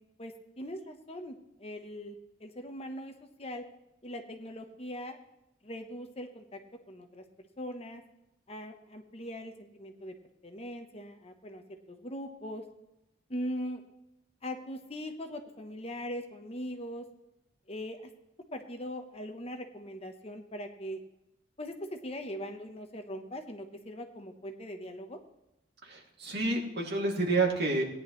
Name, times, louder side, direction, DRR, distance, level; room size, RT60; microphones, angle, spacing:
voice 1, 0.2-3.1 3.4-3.6 4.0-5.2 5.6-6.6 6.9-7.2 7.6-8.0 8.5-10.1 10.4-12.6 13.3-13.8 14.4-17.0 17.7-18.0 18.5-21.0 21.6-25.2, equal, 30° left, 6 dB, 1.0 m, -40 dB
voice 2, 25.8-27.8, right 3 dB, 55° right, -1 dB, 2.6 m, -29 dB
17.5 x 10.5 x 3.2 m, 0.88 s
head